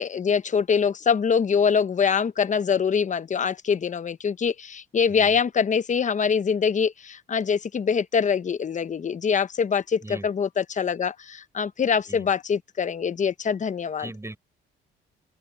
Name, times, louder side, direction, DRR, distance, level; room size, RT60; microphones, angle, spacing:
voice 1, 0.0-14.1, left 6 dB, 40° left, 0.9 m, -24 dB
voice 2, 14.0-14.4, right 2 dB, 15° right, 7.3 m, -39 dB
open air
cardioid pair, 90°, 20 cm